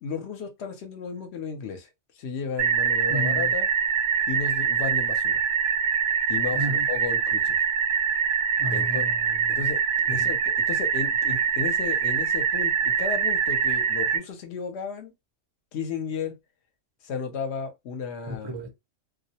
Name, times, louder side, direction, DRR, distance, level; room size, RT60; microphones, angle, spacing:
voice 1, 0.0-1.9 2.2-3.7 4.3-5.4 6.3-7.6 8.7-9.1 9.5-15.1 15.7-16.4 17.0-18.5, left 5 dB, 60° left, 0.8 m, -34 dB
sound 1, 2.6-14.2, right 7 dB, 65° right, 0.7 m, -24 dB
voice 2, 3.1-3.5 6.5-6.9 8.6-9.6 10.1-10.3 18.2-18.7, equal, 40° right, 0.3 m, -33 dB
2.3 x 2.0 x 2.8 m
omnidirectional pair, 1.4 m